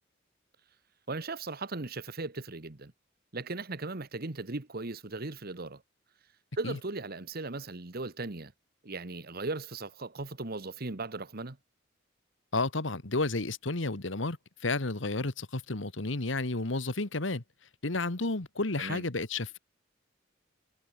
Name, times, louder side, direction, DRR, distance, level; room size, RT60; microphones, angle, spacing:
voice 1, 1.1-2.9 3.3-5.8 6.5-8.5 8.8-11.6 18.8-19.0, right 3 dB, 50° right, 1.5 m, -37 dB
voice 2, 12.5-17.4 17.8-19.6, left 2 dB, 70° left, 1.8 m, -31 dB
head